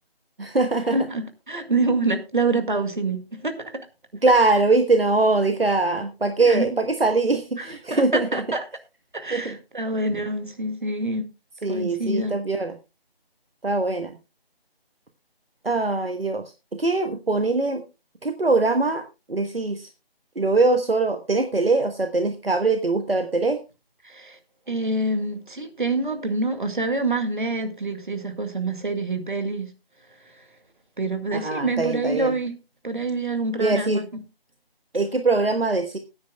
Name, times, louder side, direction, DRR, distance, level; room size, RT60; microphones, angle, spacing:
voice 1, 0.4-1.0 4.2-8.4 9.3-9.6 11.6-12.8 13.6-14.2 15.6-16.4 16.8-17.8 18.2-19.0 19.3-19.9 20.3-23.6 31.3-32.3 33.6-34.0 34.9-36.0, right 3 dB, 70° right, 1.4 m, -22 dB
voice 2, 0.9-3.9 6.4-6.7 7.6-8.6 9.1-11.3 11.7-12.4 24.0-24.4 24.7-29.7 31.0-32.5 32.8-34.1, right 2 dB, 55° right, 2.1 m, -26 dB
21.5 x 9.4 x 2.2 m
figure-of-eight pair, 160°, 30 cm